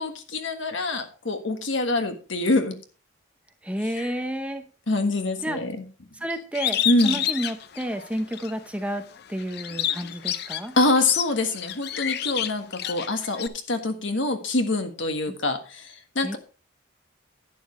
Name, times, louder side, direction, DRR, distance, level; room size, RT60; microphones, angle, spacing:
voice 1, 0.0-2.7 4.0-4.1 4.9-5.8 6.8-7.2 10.8-16.4, left 2 dB, 70° left, 7 dB, 1.5 m, -25 dB
voice 2, 3.6-4.6 5.4-5.6 6.1-9.0 9.3-10.7 15.3-15.4 16.2-16.4, equal, 5° right, 7 dB, 0.8 m, -30 dB
Bird, 6.5-8.5 9.0-13.5, left 10 dB, 50° left, 0.6 m, -29 dB
11.0 x 9.3 x 3.1 m, 0.35 s
head